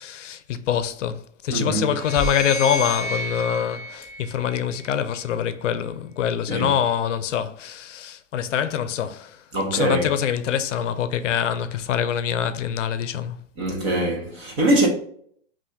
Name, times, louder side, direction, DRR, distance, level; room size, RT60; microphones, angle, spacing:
voice 1, 0.0-9.4 9.7-13.4, left 8 dB, 80° left, 0.6 m, -25 dB
voice 2, 1.5-1.9 6.5-6.7 9.5-10.1 13.6-14.9, right 1 dB, 20° right, 0.9 m, -22 dB
sound 1, 1.8-5.1, left 1 dB, 10° left, 1.0 m, -32 dB
5.5 x 2.6 x 2.7 m
hypercardioid pair, 170°, 36 cm